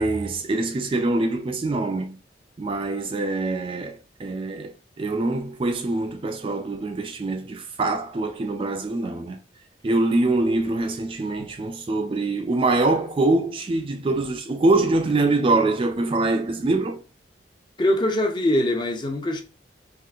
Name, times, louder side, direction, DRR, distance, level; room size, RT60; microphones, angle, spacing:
voice 1, 0.0-2.2 2.6-9.4 9.8-17.0, right 2 dB, 30° right, 0.3 m, -24 dB
voice 2, 17.8-19.4, left 1 dB, 25° left, 0.5 m, -22 dB
3.7 x 2.4 x 2.3 m
head